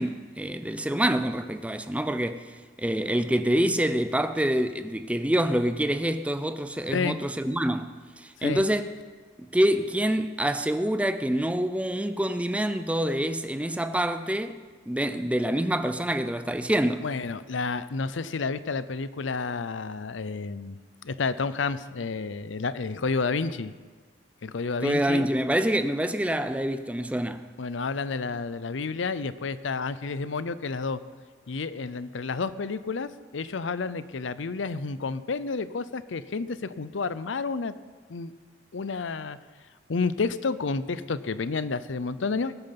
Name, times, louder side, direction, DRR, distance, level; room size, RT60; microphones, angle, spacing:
voice 1, 0.0-2.4 2.8-8.9 9.5-14.6 14.9-17.0 24.8-27.4, right 1 dB, 5° right, 0.5 m, -26 dB
voice 2, 17.0-20.8 21.0-23.7 24.4-25.3 27.6-31.0 31.5-37.7 38.1-38.3 38.7-39.4 39.9-42.5, left 4 dB, 85° left, 0.6 m, -30 dB
20.0 x 9.0 x 5.9 m
head